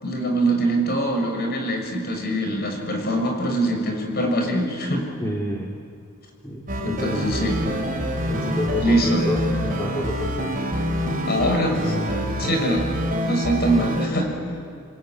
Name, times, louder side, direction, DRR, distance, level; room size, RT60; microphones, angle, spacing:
voice 1, 0.0-5.1 6.8-7.6 8.8-9.2 11.3-11.9 12.4-12.9 13.2-14.3, right 1 dB, 45° left, 3 dB, 6.4 m, -23 dB
voice 2, 5.2-5.7 6.4-7.3 8.3-10.6, left 1 dB, 15° left, -2 dB, 2.4 m, -29 dB
sound 1, 6.7-14.1, equal, 40° right, 5.9 m, -26 dB
28.5 x 22.0 x 9.6 m, 2.4 s
head